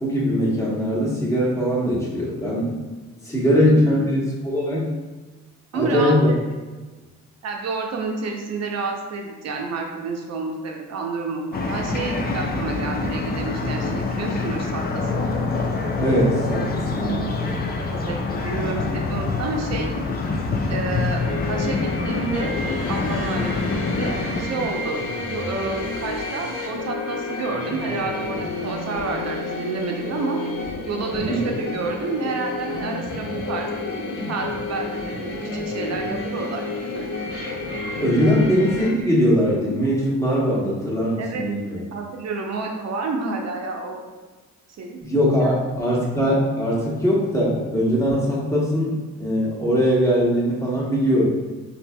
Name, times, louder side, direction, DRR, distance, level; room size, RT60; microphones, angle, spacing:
voice 1, 0.0-2.8 3.2-4.9 5.7-6.3 16.0-17.6 31.2-31.4 38.0-41.8 45.0-51.3, equal, 10° left, -6 dB, 1.1 m, -21 dB
voice 2, 5.7-6.4 7.4-15.3 17.9-19.9 20.7-22.6 22.9-30.4 30.8-33.7 34.3-36.6 36.9-37.0 41.2-41.4 41.9-44.0 44.8-45.0 45.4-45.5, right 3 dB, 60° right, 2 dB, 0.7 m, -29 dB
sound 1, 11.5-24.4, left 3 dB, 30° left, 0.4 m, -26 dB
sound 2, 21.2-38.9, left 2 dB, 80° left, 1.0 m, -30 dB
4.2 x 2.7 x 2.2 m, 1.3 s
cardioid pair, 90°, 30 cm